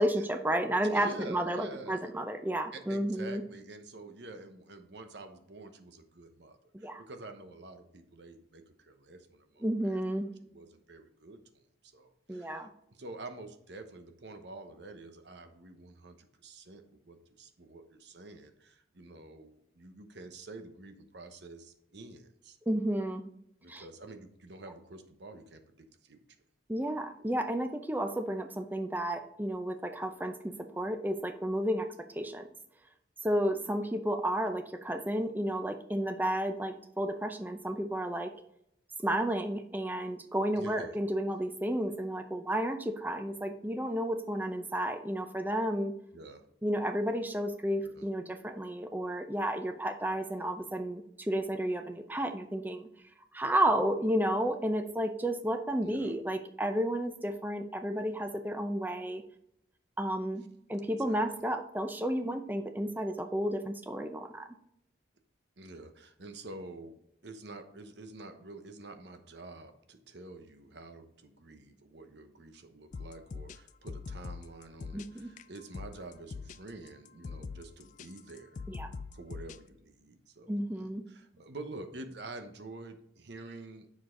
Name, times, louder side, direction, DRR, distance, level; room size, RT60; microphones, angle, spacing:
voice 1, 0.0-3.4 6.7-7.0 9.6-10.3 12.3-12.7 22.7-23.2 23.7-23.8 26.7-32.5 33.2-38.3 39.0-45.9 46.6-52.9 53.3-59.2 60.0-60.4 60.7-64.5 74.9-75.3 78.7-78.9 80.5-81.0, right 1 dB, 10° right, 6 dB, 0.5 m, -32 dB
voice 2, 0.8-2.1 2.7-10.0 10.5-22.6 23.6-26.2 40.5-40.9 46.1-46.5 47.8-48.1 55.8-56.2 61.0-61.2 65.6-66.9 67.2-78.6 79.1-83.9, right 2 dB, 65° right, 7 dB, 1.0 m, -48 dB
sound 1, 72.9-79.6, left 4 dB, 40° left, 0.3 m, -43 dB
7.3 x 6.4 x 3.8 m, 0.76 s
head